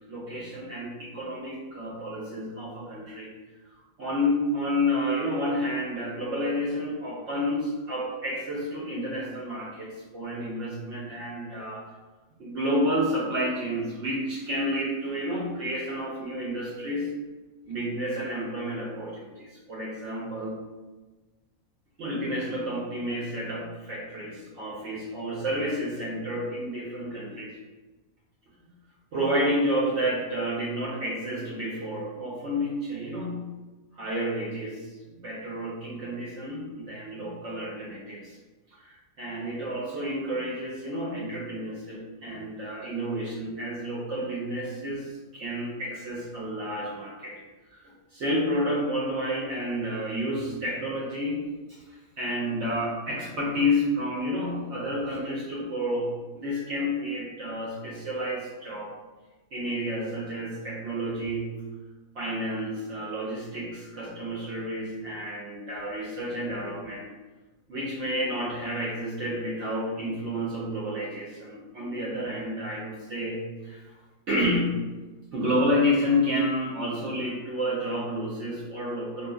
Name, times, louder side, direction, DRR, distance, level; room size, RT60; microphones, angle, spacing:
voice 1, 0.1-3.3 4.0-11.8 12.4-17.1 17.7-20.6 22.0-27.6 29.1-33.4 33.9-38.4 38.7-47.3 47.7-58.9 59.5-61.5 62.1-67.1 67.7-73.8 74.3-74.8 75.3-79.3, equal, 65° right, -5 dB, 0.8 m, -30 dB
2.7 x 2.4 x 2.3 m, 1.2 s
omnidirectional pair, 1.6 m